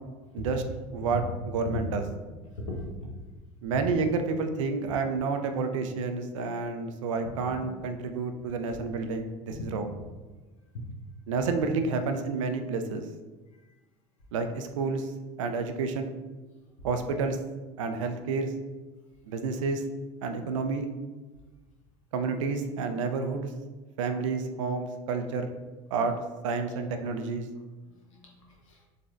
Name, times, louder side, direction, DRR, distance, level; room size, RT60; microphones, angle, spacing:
voice 1, 1.5-2.0 3.6-9.9 11.3-13.0 14.3-15.1 15.4-16.1 16.8-17.4 17.8-18.5 19.3-19.8 20.2-20.9 22.1-23.5 24.0-25.5 25.9-26.2 26.4-27.5, right 4 dB, 85° right, 7 dB, 0.4 m, -30 dB
voice 2, 2.5-2.8 9.6-9.7 10.7-10.9 25.3-25.4 27.8-28.9, left 2 dB, 90° left, -1 dB, 0.9 m, -39 dB
3.9 x 3.2 x 2.5 m, 1.2 s
hypercardioid pair, 80°, 16 cm